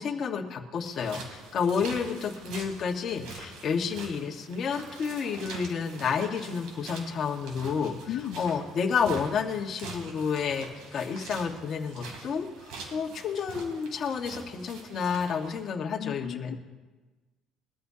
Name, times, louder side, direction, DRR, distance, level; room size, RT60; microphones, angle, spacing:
voice 1, 0.0-12.5 12.9-16.6, left 6 dB, 40° left, 1 dB, 1.5 m, -30 dB
sound 1, 0.8-15.6, right 3 dB, 85° right, 3.1 m, -45 dB
voice 2, 8.1-8.4 16.0-16.6, left 11 dB, 65° left, 11 dB, 0.7 m, -35 dB
22.0 x 13.5 x 2.8 m, 1.3 s
cardioid pair, 145°, 0 cm